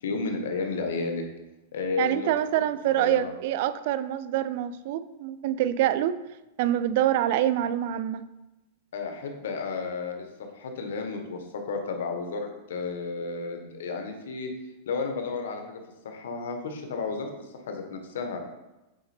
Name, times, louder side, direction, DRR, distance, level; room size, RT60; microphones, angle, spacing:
voice 1, 0.0-1.2 1.7-2.3 3.0-3.3 8.9-14.5 14.9-18.4, left 4 dB, 85° left, 4 dB, 1.3 m, -32 dB
voice 2, 2.0-6.2 6.6-8.2, right 12 dB, 60° right, 14 dB, 0.4 m, -26 dB
7.9 x 4.3 x 4.4 m, 1.0 s
supercardioid pair, 145°, 0 cm